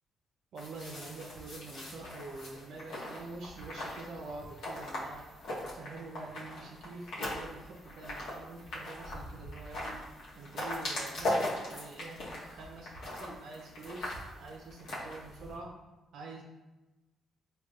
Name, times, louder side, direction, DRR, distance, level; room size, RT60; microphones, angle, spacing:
voice 1, 0.5-5.3 5.7-10.0 10.3-15.7 16.1-16.4, right 3 dB, 70° right, -1 dB, 0.4 m, -46 dB
sound 1, 0.6-15.6, left 1 dB, 80° left, 0.9 m, -40 dB
4.9 x 2.3 x 2.3 m, 1.1 s
cardioid pair, 90°, 0 cm